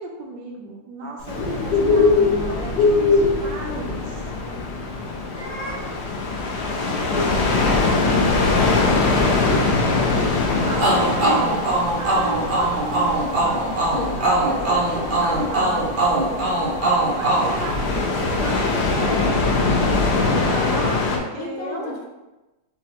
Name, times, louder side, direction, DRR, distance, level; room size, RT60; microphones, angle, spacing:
voice 1, 0.0-4.2 10.2-13.6 14.2-15.9 17.1-21.9, right 2 dB, 70° right, 0 dB, 1.1 m, -34 dB
Bird, 1.2-13.3, left 3 dB, 55° left, 1.8 m, -24 dB
sound 1, 1.3-21.2, left 3 dB, 70° left, 1.0 m, -23 dB
voice 2, 4.2-4.7 5.0-7.6 9.4-12.8 13.9-15.2 16.4-17.4 21.4-22.0, left 1 dB, 85° left, -1 dB, 1.6 m, -36 dB
sound 2, 10.8-18.4, right 2 dB, 55° right, 0.5 m, -22 dB
6.1 x 2.2 x 2.9 m, 1.1 s
omnidirectional pair, 2.1 m